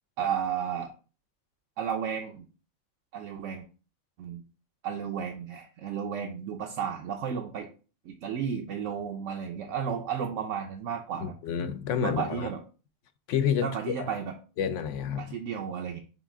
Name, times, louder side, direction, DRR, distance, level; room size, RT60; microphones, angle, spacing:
voice 1, 0.2-0.9 1.8-2.5 3.1-3.7 4.2-4.4 4.8-7.7 8.0-11.3 12.0-12.6 13.6-14.3 15.2-16.0, right 7 dB, 85° right, 0.9 m, -33 dB
voice 2, 11.2-12.5 13.3-13.7 14.0-14.2 14.6-15.3, left 8 dB, 80° left, 0.9 m, -29 dB
5.6 x 2.4 x 3.4 m
omnidirectional pair, 1.2 m